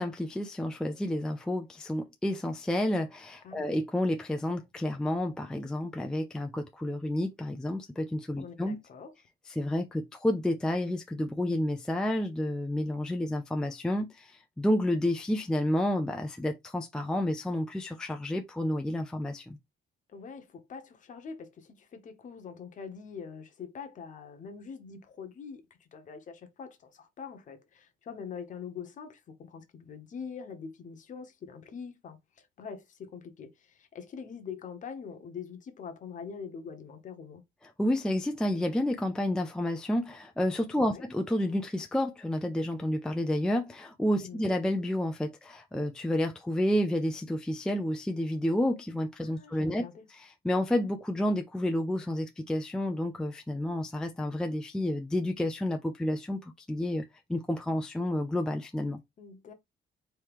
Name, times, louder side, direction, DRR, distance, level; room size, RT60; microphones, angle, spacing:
voice 1, 0.0-8.8 9.5-19.6 37.8-49.9 50.2-57.0 57.3-59.0, left 1 dB, 5° left, 0.4 m, -30 dB
voice 2, 3.4-3.8 8.4-9.1 20.1-37.4 40.8-41.0 44.2-44.5 49.2-50.0 59.2-59.5, left 6 dB, 40° left, 1.1 m, -44 dB
4.6 x 3.1 x 3.5 m
cardioid pair, 180°, 19 cm